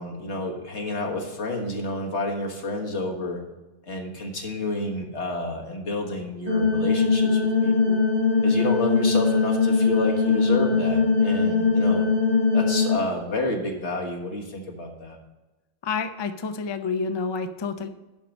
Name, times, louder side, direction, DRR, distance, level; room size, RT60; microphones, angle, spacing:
voice 1, 0.0-3.4 3.8-8.0 8.4-12.1 12.5-15.2, left 2 dB, 85° left, 1 dB, 1.8 m, -30 dB
sound 1, 6.5-12.9, left 4 dB, 35° right, 1.5 m, -21 dB
voice 2, 15.8-17.9, left 4 dB, 35° left, 8 dB, 0.5 m, -29 dB
11.5 x 4.6 x 5.3 m, 1.1 s
omnidirectional pair, 1.1 m